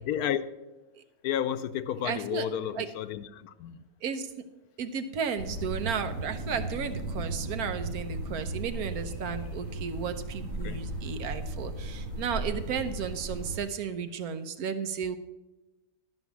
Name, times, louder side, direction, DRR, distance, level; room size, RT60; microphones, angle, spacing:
voice 1, 0.1-0.4 1.2-3.3 3.6-3.8 10.6-10.8, left 10 dB, 90° left, 12 dB, 1.1 m, -31 dB
voice 2, 2.0-2.5 2.7-2.9 4.0-4.3 4.8-15.2, right 7 dB, 85° right, 9 dB, 1.3 m, -34 dB
sound 1, 5.4-13.6, right 1 dB, 60° right, 2.5 m, -36 dB
12.0 x 5.4 x 7.0 m, 1.1 s
omnidirectional pair, 1.5 m